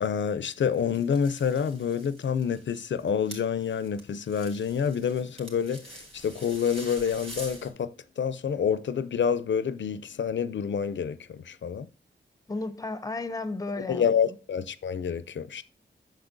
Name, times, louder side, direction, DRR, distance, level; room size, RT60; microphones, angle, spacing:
voice 1, 0.0-11.9 13.9-15.6, left 7 dB, 70° left, 0.4 m, -28 dB
sound 1, 0.7-7.7, right 1 dB, 30° right, 2.7 m, -46 dB
voice 2, 12.5-14.4, left 3 dB, 20° left, 0.5 m, -34 dB
8.0 x 6.5 x 2.5 m
wide cardioid pair, 75°, 20 cm